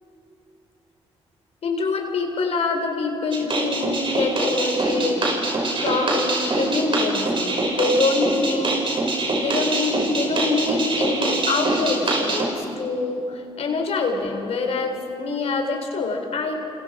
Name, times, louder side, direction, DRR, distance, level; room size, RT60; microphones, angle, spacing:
voice 1, 1.6-5.5 5.8-8.8 9.4-16.5, left 3 dB, 65° left, 3 dB, 3.9 m, -25 dB
sound 1, 3.3-12.5, right 2 dB, 45° right, 5.9 m, -24 dB
29.0 x 26.5 x 5.0 m, 2.8 s
supercardioid pair, 60°, 12 cm